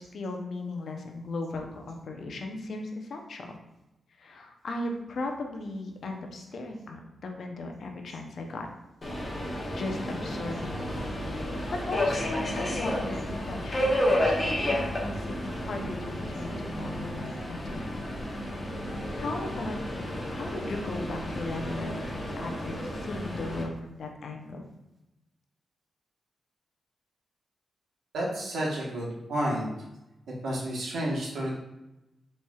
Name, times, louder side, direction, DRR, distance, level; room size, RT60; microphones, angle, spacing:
voice 1, 0.0-3.4 4.2-8.7 9.8-11.1 11.8-18.0 18.5-24.6, left 2 dB, 65° left, 2 dB, 0.6 m, -37 dB
Subway metro underground, 9.0-23.6, left 1 dB, 30° left, 0.9 m, -31 dB
voice 2, 28.1-29.7 30.4-31.6, right 1 dB, 90° right, -4 dB, 1.1 m, -30 dB
4.2 x 3.2 x 2.3 m, 0.94 s
wide cardioid pair, 115°, 0 cm